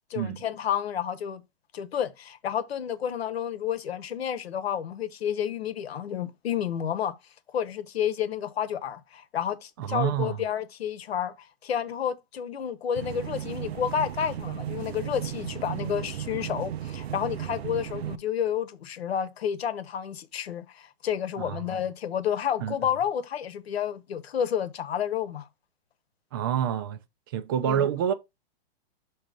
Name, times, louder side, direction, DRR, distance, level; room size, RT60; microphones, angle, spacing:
voice 1, 0.1-1.4 1.7-7.1 7.5-25.5 27.6-27.9, left 9 dB, 80° left, 1.1 m, -30 dB
voice 2, 9.8-10.4 21.4-21.6 22.6-22.8 26.3-27.0 27.3-28.1, right 9 dB, 25° right, 0.4 m, -27 dB
sound 1, 13.0-18.2, right 11 dB, 85° right, 0.7 m, -35 dB
6.3 x 3.1 x 5.1 m
hypercardioid pair, 160°, 31 cm